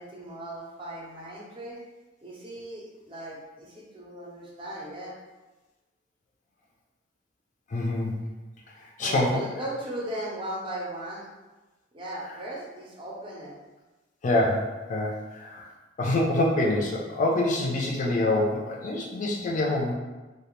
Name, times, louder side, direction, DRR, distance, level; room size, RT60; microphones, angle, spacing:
voice 1, 0.0-1.8 2.2-5.2 9.0-11.3 11.9-13.6, right 1 dB, 25° right, -4 dB, 0.5 m, -37 dB
voice 2, 7.7-8.1 9.0-9.4 14.2-15.7 16.0-19.9, left 1 dB, 40° left, -1 dB, 0.4 m, -25 dB
2.3 x 2.1 x 3.0 m, 1.2 s
head